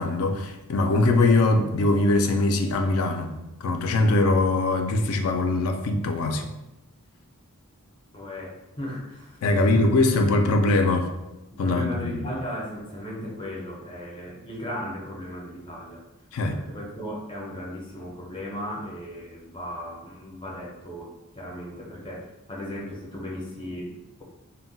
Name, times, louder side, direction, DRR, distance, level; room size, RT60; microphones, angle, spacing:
voice 1, 0.0-3.3 3.6-6.5 9.4-11.1 11.6-12.2 16.3-16.6, left 2 dB, 70° left, 0.4 m, -22 dB
voice 2, 8.1-9.9 11.5-16.0 16.5-24.2, equal, 25° left, 0.6 m, -36 dB
2.2 x 2.1 x 3.8 m
head